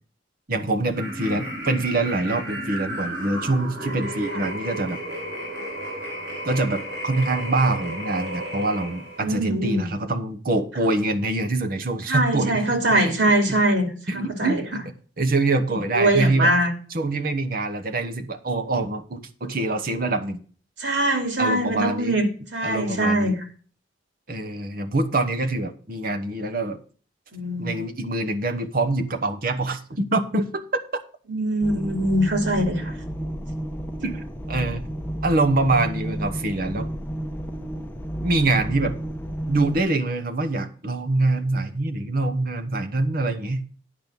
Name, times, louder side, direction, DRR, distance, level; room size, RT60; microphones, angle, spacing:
voice 1, 0.5-5.0 6.4-12.6 13.0-13.1 13.5-13.6 14.1-14.8 15.2-16.5 16.9-20.4 21.4-22.2 22.6-23.4 24.3-26.8 27.6-30.6 34.0-34.9 35.2-36.9 38.2-39.0 39.5-43.6, right 2 dB, 55° right, 6 dB, 1.0 m, -25 dB
sound 1, 0.9-9.3, right 1 dB, 70° right, 6.0 m, -33 dB
voice 2, 9.2-9.9 12.1-14.6 15.9-16.7 20.8-22.3 22.5-23.3 27.3-27.8 31.3-32.9, right 1 dB, 90° right, 4 dB, 2.7 m, -22 dB
sound 2, 31.6-39.8, right 1 dB, 10° left, 0.9 m, -31 dB
10.5 x 5.4 x 6.0 m, 0.41 s
head